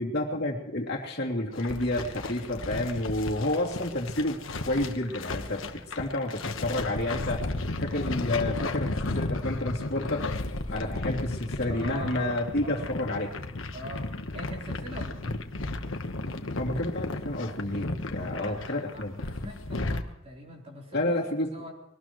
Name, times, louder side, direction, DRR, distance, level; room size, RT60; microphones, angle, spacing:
voice 1, 0.0-7.5 7.8-10.3 10.7-13.3 16.6-19.2 20.9-21.6, left 1 dB, 50° left, -1 dB, 3.0 m, -30 dB
sound 1, 1.5-20.0, left 2 dB, 75° left, 1.3 m, -34 dB
voice 2, 11.7-12.9 13.7-14.1 14.3-15.4 18.2-21.1 21.5-21.7, equal, 30° right, -1 dB, 3.8 m, -42 dB
23.5 x 18.5 x 3.1 m, 0.93 s
head